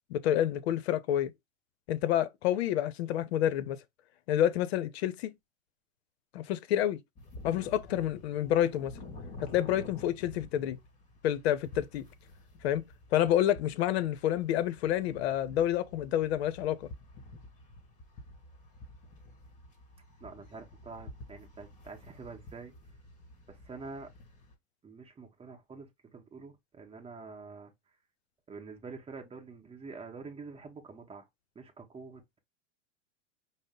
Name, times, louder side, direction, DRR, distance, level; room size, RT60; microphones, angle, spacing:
voice 1, 0.1-1.3 1.9-3.8 4.3-5.3 6.3-7.0 7.4-8.9 9.4-10.8 11.2-12.0 12.6-12.8 13.1-16.9, left 11 dB, 55° left, 0.7 m, -28 dB
sound 1, 7.1-24.5, left 2 dB, 20° left, 1.6 m, -50 dB
voice 2, 20.2-22.7 23.5-24.1 24.8-27.7 28.5-31.3 31.5-32.4, right 4 dB, 15° right, 1.1 m, -46 dB
5.2 x 2.1 x 3.6 m
hypercardioid pair, 100°, 38 cm